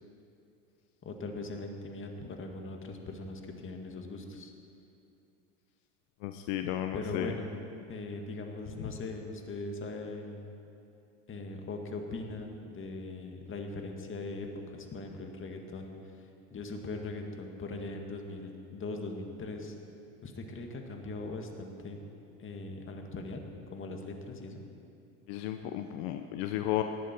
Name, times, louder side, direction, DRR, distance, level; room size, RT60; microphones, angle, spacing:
voice 1, 1.0-4.5 6.9-7.6 7.9-10.5 11.3-15.9 16.2-19.7 20.2-22.0 22.4-23.4 23.7-24.6, left 2 dB, 30° left, 3 dB, 2.1 m, -40 dB
voice 2, 6.2-7.3 25.3-26.8, left 13 dB, 65° left, 7 dB, 0.9 m, -33 dB
18.5 x 12.0 x 4.6 m, 2.6 s
hypercardioid pair, 90°, 41 cm